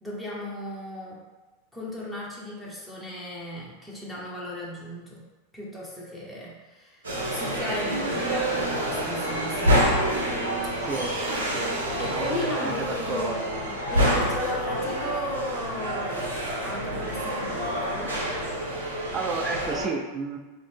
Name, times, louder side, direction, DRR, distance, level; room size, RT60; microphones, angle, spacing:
voice 1, 0.0-1.2 1.7-5.2 5.5-9.8 10.7-11.0 12.0-13.4 13.9-18.2, left 1 dB, ahead, -7 dB, 0.9 m, -35 dB
sound 1, 7.0-19.9, equal, 85° right, 0.8 m, -27 dB
voice 2, 10.8-11.1 11.5-11.7 12.1-13.8 19.1-20.4, right 4 dB, 30° right, 3 dB, 0.5 m, -32 dB
3.7 x 2.1 x 3.4 m, 1.2 s
hypercardioid pair, 95°, 0 cm